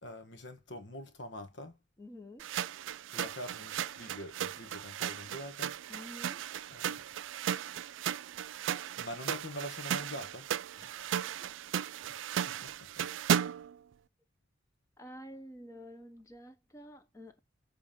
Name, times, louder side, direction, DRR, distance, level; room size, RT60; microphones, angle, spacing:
voice 1, 0.0-1.8 3.1-5.7 6.7-7.0 9.0-10.5 11.0-11.1 12.6-12.7 13.0-13.1, equal, 70° left, 1.5 m, -44 dB
voice 2, 2.0-2.5 5.9-6.5 10.8-11.2 15.0-17.4, equal, 15° left, 1.0 m, -49 dB
sound 1, 2.4-13.7, right 9 dB, 85° right, 0.3 m, -36 dB
7.2 x 3.6 x 5.8 m
head